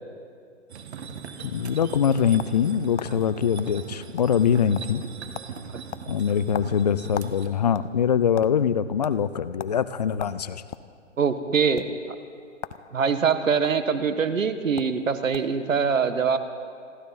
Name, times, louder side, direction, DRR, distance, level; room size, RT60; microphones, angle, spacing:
sound 1, 0.7-7.5, right 6 dB, 55° right, 1.6 m, -40 dB
sound 2, 1.2-2.7 3.0-3.1 3.6-3.7 4.0-4.5 4.7-5.1 5.3-5.5 5.9-7.4 7.7-8.5 9.0-9.2 9.6-9.8 10.2-10.9 11.7-11.9 12.6-12.8 13.1-13.7 14.4-14.5 14.8-15.0 15.3-15.6, left 8 dB, 65° left, 0.9 m, -37 dB
voice 1, 1.4-5.0 6.1-10.6, left 8 dB, 35° left, 15 dB, 0.4 m, -23 dB
voice 2, 11.2-11.8 12.9-16.4, right 6 dB, 85° right, 10 dB, 1.4 m, -23 dB
28.5 x 12.0 x 4.1 m, 2.2 s
hypercardioid pair, 145°, 38 cm